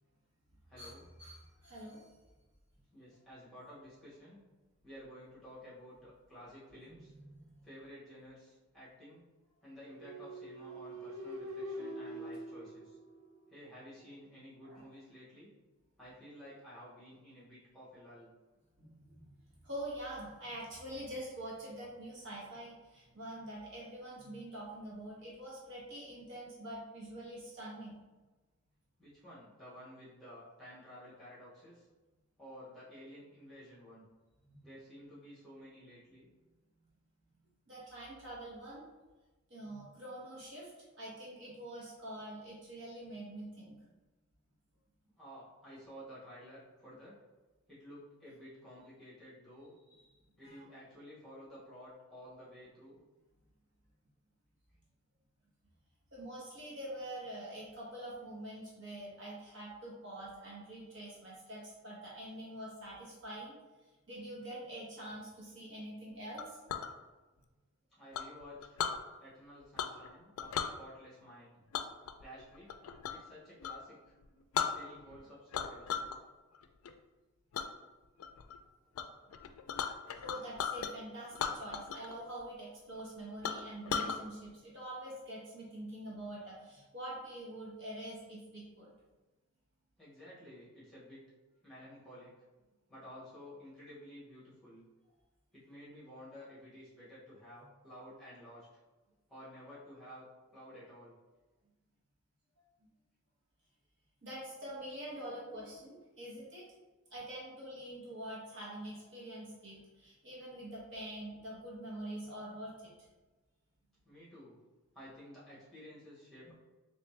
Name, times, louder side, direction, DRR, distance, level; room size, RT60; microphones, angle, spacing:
voice 1, 0.7-1.0 2.9-4.4 4.8-7.1 7.6-9.2 9.6-13.0 13.5-15.5 16.0-18.3 29.0-31.9 32.4-34.0 34.6-36.3 45.2-47.2 47.7-49.7 50.4-53.0 67.9-68.8 69.2-71.6 72.2-72.7 73.1-74.0 74.7-75.9 90.0-91.2 91.6-92.4 92.9-94.8 95.5-98.7 99.3-100.3 100.5-101.2 114.0-114.6 114.9-116.5, equal, ahead, -10 dB, 1.5 m, -52 dB
voice 2, 1.2-2.1 6.9-7.0 7.4-7.6 14.7-14.8 18.8-19.3 19.6-28.0 37.7-38.9 39.5-40.7 41.0-43.7 50.4-50.6 56.1-63.5 64.1-66.6 80.1-88.9 104.2-106.6 107.1-112.9, right 1 dB, 55° right, -6 dB, 1.1 m, -45 dB
flute trill, 9.9-13.7, equal, 80° right, 0.5 m, -44 dB
Chink clink, 66.4-66.9 68.1-69.0 69.8-70.1 70.4-70.7 71.7-73.3 73.6-73.8 74.2-74.3 74.5-75.2 75.5-76.2 76.5-76.9 77.5-77.7 78.2-78.6 78.9-79.1 79.3-80.9 81.3-82.1 82.4-82.5 83.0-83.1 83.4-84.2, left 7 dB, 85° left, 0.3 m, -36 dB
3.3 x 3.2 x 3.2 m, 1.2 s
head